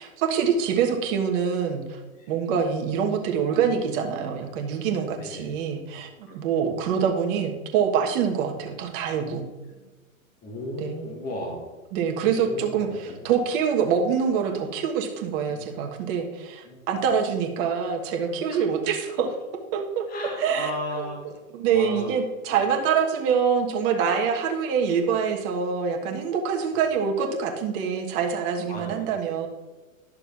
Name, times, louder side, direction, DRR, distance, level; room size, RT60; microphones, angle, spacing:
voice 1, 0.0-2.0 2.3-6.1 6.3-9.5 10.8-11.0 11.9-12.9 13.2-19.3 19.7-20.0 20.4-20.7 21.0-21.1 21.5-29.5, right 7 dB, 40° right, 3 dB, 1.2 m, -25 dB
voice 2, 5.2-5.5 6.3-6.6 9.7-9.9 10.4-11.7 12.3-13.2 15.5-15.6 16.6-16.9 18.5-18.6 20.1-21.3 21.7-22.1 22.4-22.6 26.7-26.8 28.7-29.0, left 1 dB, 20° left, 0 dB, 1.5 m, -35 dB
11.0 x 6.5 x 2.5 m, 1.2 s
hypercardioid pair, 110°, 42 cm